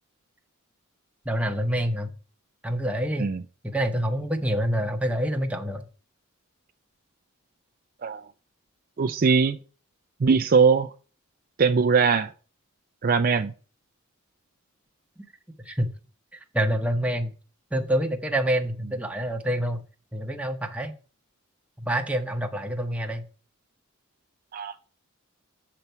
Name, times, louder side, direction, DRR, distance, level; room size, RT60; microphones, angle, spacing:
voice 1, 1.2-2.1 2.6-3.3 3.6-5.9 15.6-15.9 16.5-17.3 17.7-19.8 20.1-20.9 21.9-23.2, right 1 dB, 5° right, 0.9 m, -26 dB
voice 2, 9.0-9.6 10.2-10.9 11.6-12.3 13.0-13.5 24.5-24.8, right 5 dB, 45° right, 0.4 m, -21 dB
7.2 x 6.8 x 4.5 m
head